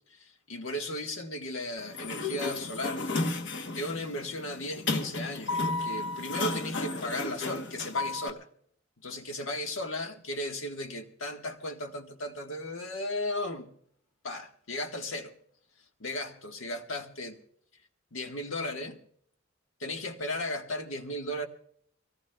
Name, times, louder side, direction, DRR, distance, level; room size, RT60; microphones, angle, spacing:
voice 1, 0.1-3.1 3.8-8.5 9.0-13.7 14.2-15.3 16.0-17.4 18.1-19.0 19.8-21.5, left 1 dB, 90° left, 1.4 m, -36 dB
Sliding door, 1.8-8.3, left 3 dB, 60° left, 1.0 m, -33 dB
25.0 x 18.0 x 2.3 m
head